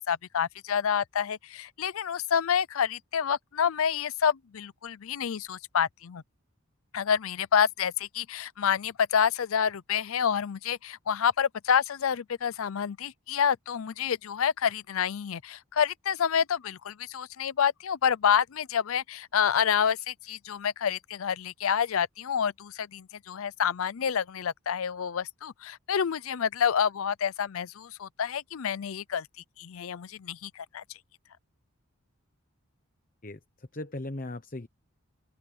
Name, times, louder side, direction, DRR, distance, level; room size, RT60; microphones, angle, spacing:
voice 1, 0.1-6.2 6.9-29.3 29.6-30.8, left 7 dB, 75° left, 0.5 m, -28 dB
voice 2, 33.2-34.7, left 2 dB, 40° left, 1.0 m, -38 dB
open air
head